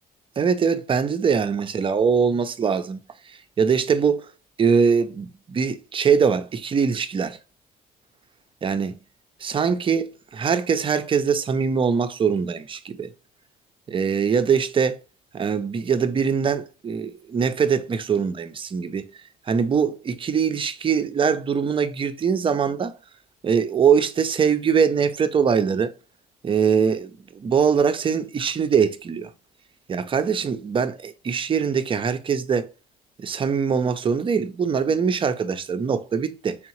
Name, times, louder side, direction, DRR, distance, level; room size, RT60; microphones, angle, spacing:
voice 1, 0.4-3.0 3.3-4.3 4.6-7.4 8.6-9.0 9.4-13.1 13.9-15.0 15.3-19.1 19.5-23.0 23.4-25.9 26.4-29.3 29.9-32.7 33.2-36.6, right 6 dB, 30° right, 0.6 m, -22 dB
3.7 x 3.5 x 3.0 m
cardioid pair, 110°, 17 cm